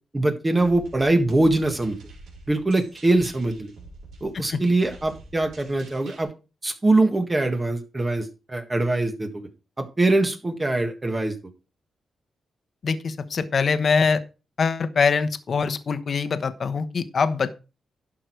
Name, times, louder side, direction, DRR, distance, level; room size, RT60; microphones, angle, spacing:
voice 1, 0.1-2.0 2.5-3.7 4.2-6.3 6.6-9.5 9.8-11.5, right 2 dB, 20° right, 5 dB, 1.6 m, -23 dB
sound 1, 0.6-6.2, right 2 dB, 90° right, 4.3 m, -46 dB
voice 2, 12.8-14.2 14.6-17.5, left 5 dB, 50° left, 12 dB, 1.1 m, -23 dB
11.5 x 6.3 x 4.6 m, 0.31 s
cardioid pair, 100°, 0 cm